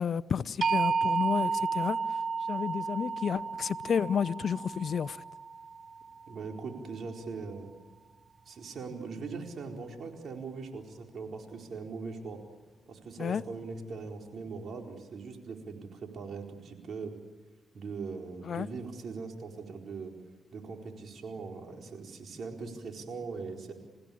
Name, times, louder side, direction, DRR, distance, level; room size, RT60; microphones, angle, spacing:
voice 1, 0.0-2.0 2.5-5.2 13.2-13.4 18.4-18.7, left 7 dB, 65° left, 0.7 m, -31 dB
sound 1, 0.6-6.6, right 5 dB, 50° right, 0.9 m, -32 dB
voice 2, 6.3-7.7 8.5-12.4 12.9-17.1 17.7-20.1 20.5-23.7, right 4 dB, 65° right, 4.3 m, -40 dB
28.5 x 16.0 x 8.7 m
supercardioid pair, 60°, 0 cm